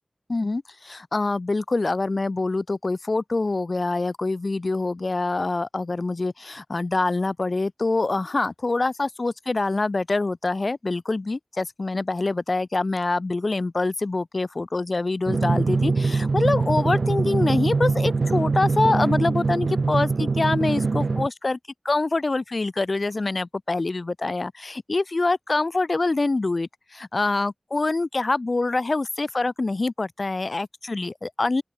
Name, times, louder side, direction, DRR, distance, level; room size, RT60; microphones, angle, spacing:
voice 1, 0.3-21.6 21.8-31.6, left 3 dB, 60° left, 2.5 m, -25 dB
Drum, 15.3-21.3, right 3 dB, 85° right, 0.7 m, -23 dB
open air
wide cardioid pair, 60°, 0 cm